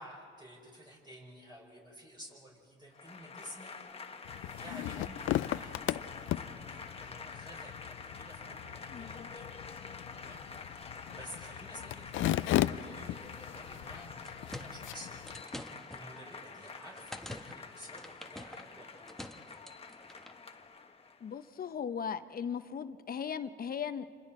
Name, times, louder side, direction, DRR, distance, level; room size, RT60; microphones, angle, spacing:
voice 1, 0.0-3.7 4.6-9.5 10.1-19.0, equal, 20° right, -3 dB, 5.5 m, -52 dB
Applause / Crowd, 2.9-21.5, left 4 dB, 30° left, 1.3 m, -47 dB
sound 1, 4.3-15.4, left 14 dB, 80° left, 0.5 m, -37 dB
voice 2, 8.9-9.3 21.2-24.1, left 7 dB, 45° left, 10 dB, 0.8 m, -38 dB
sound 2, 14.0-20.4, left 1 dB, ahead, 1.1 m, -48 dB
28.0 x 26.5 x 4.4 m, 2.4 s
cardioid pair, 90°, 20 cm